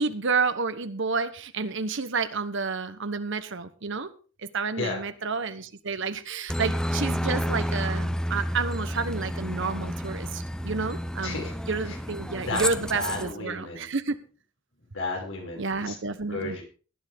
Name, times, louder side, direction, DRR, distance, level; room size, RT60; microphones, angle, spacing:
voice 1, 0.0-4.1 4.4-14.2 15.6-16.6, right 4 dB, 65° right, 11 dB, 1.1 m, -30 dB
Aircraft, 6.5-13.3, equal, 5° left, 0.6 m, -30 dB
voice 2, 11.2-11.5 11.9-12.0 12.5-12.6 12.9-13.9 14.9-16.0 16.3-16.6, left 2 dB, 75° left, 0 dB, 6.0 m, -32 dB
18.5 x 10.0 x 3.6 m, 0.38 s
head